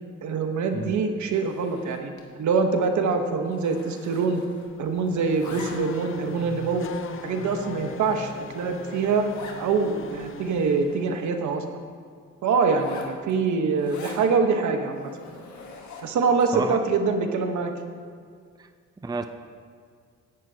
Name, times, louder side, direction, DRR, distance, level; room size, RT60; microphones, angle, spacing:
voice 1, 0.2-2.1 2.4-4.4 4.8-6.9 7.2-9.3 9.6-11.6 12.4-15.1 16.0-17.7, right 4 dB, 70° right, 5 dB, 1.2 m, -24 dB
voice 2, 0.7-1.0 16.0-16.1 16.5-16.8 18.6-18.7 19.0-19.3, right 4 dB, 15° right, 8 dB, 0.5 m, -31 dB
Zipper (clothing), 1.3-2.3 2.6-2.9 3.1-4.8 5.1-6.1 6.7-6.8 7.4-7.5 7.9-8.0 8.2-8.3 8.6-8.7 9.3-9.6 10.1-10.2 10.4-11.7 12.6-14.3 14.8-16.2, left 4 dB, 70° left, 1.8 m, -44 dB
Race car auto racing / Accelerating revving vroom, 4.6-11.3, left 6 dB, 45° left, 0.8 m, -40 dB
17.0 x 11.0 x 2.9 m, 2.1 s
cardioid pair, 90°, 30 cm